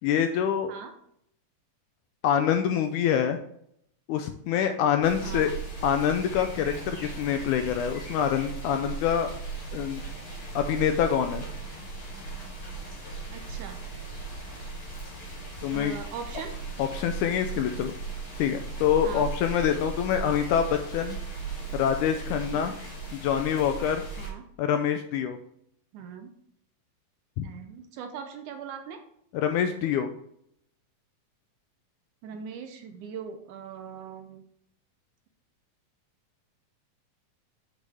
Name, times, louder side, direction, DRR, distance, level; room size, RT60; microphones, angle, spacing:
voice 1, 0.0-0.7 2.2-3.4 4.1-5.5 5.8-9.3 9.7-10.0 10.6-11.4 15.6-15.9 16.8-17.9 18.4-21.2 21.7-22.8 23.1-24.0 24.6-25.4 27.4-27.5 29.3-30.1, left 9 dB, 80° left, 7 dB, 1.9 m, -25 dB
sound 1, 5.0-24.3, right 4 dB, 40° left, 4.0 m, -37 dB
voice 2, 5.2-5.5 13.3-13.8 15.7-16.5 19.0-19.3 22.5-22.8 24.2-24.4 25.9-26.3 27.4-29.0 32.2-34.4, right 6 dB, 75° right, 6 dB, 2.0 m, -40 dB
7.5 x 6.5 x 3.4 m, 0.70 s
omnidirectional pair, 4.0 m